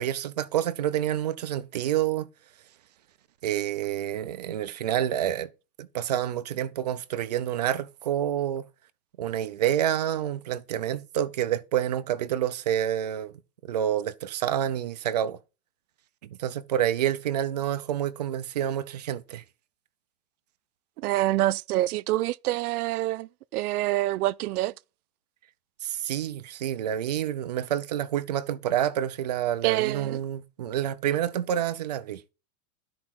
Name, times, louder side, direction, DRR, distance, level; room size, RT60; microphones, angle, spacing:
voice 1, 0.0-2.3 3.4-5.5 5.8-8.7 9.2-13.3 13.7-15.4 16.2-19.4 25.8-32.2, right 11 dB, 30° right, 0.4 m, -28 dB
voice 2, 21.0-24.7 29.6-30.2, right 16 dB, 85° right, 0.5 m, -26 dB
12.5 x 4.7 x 5.8 m
supercardioid pair, 180°, 43 cm